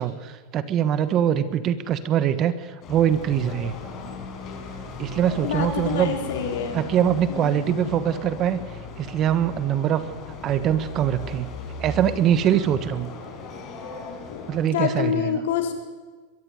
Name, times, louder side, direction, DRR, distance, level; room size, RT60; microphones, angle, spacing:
voice 1, 0.0-3.7 5.0-6.2 6.7-8.6 9.0-10.0 10.4-13.1 14.5-15.4, right 10 dB, 35° right, 13 dB, 1.3 m, -23 dB
sound 1, 2.8-14.7, left 4 dB, 35° left, 4.9 m, -37 dB
voice 2, 5.4-6.9 7.3-7.6 14.3-14.4 14.7-15.7, left 8 dB, 75° left, 4 dB, 4.0 m, -27 dB
22.5 x 14.0 x 9.3 m, 1.4 s
supercardioid pair, 135°, 0 cm